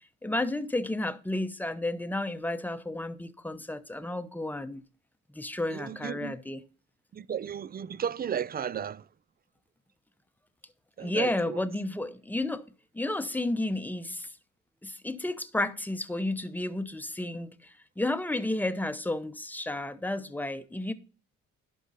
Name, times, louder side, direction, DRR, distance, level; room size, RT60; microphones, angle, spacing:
voice 1, 0.2-4.8 5.3-6.6 11.0-12.6 12.9-14.3 14.8-20.9, left 2 dB, 5° left, 0.8 m, -32 dB
voice 2, 5.7-6.4 7.1-9.1 11.0-11.6, right 8 dB, 30° right, 0.4 m, -34 dB
11.5 x 5.4 x 4.0 m
cardioid pair, 90°, 30 cm